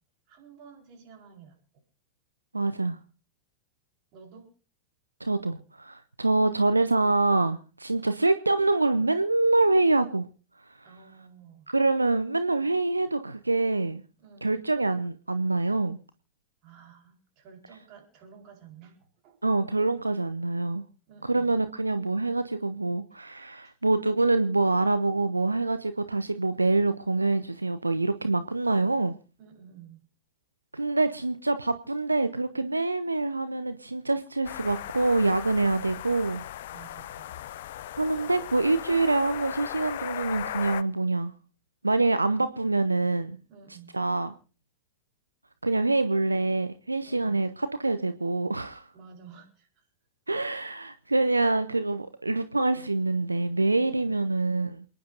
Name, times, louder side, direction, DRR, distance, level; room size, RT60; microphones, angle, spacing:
voice 1, 0.3-1.6 4.1-4.5 7.9-8.1 10.8-11.7 14.2-14.6 16.6-19.4 21.1-21.5 23.6-23.7 29.4-30.0 36.7-37.3 43.5-43.9 47.0-47.4 48.9-49.9 53.9-54.2, right 6 dB, 40° right, 4.5 m, -51 dB
voice 2, 2.5-3.0 5.2-10.3 10.7-10.9 11.7-14.0 14.4-16.0 19.4-20.8 21.2-29.1 30.7-36.4 38.0-41.3 41.8-43.4 43.9-44.3 45.6-48.9 50.3-54.8, right 2 dB, 80° right, 0.6 m, -25 dB
sound 1, 34.4-40.8, left 12 dB, 55° left, 0.5 m, -37 dB
28.0 x 10.5 x 2.6 m
figure-of-eight pair, 90°, 0 cm